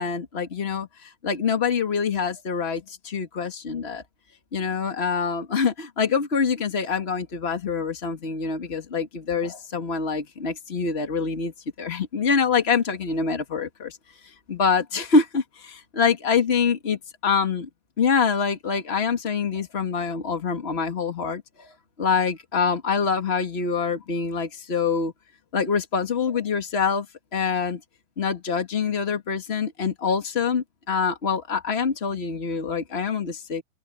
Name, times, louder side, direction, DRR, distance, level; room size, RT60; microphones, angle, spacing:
voice 1, 0.0-4.0 4.5-11.5 11.8-14.0 14.5-17.7 18.0-21.7 22.0-25.1 25.5-27.1 27.3-27.8 28.2-33.6, left 5 dB, 55° left, 0.7 m, -25 dB
open air
omnidirectional pair, 4.2 m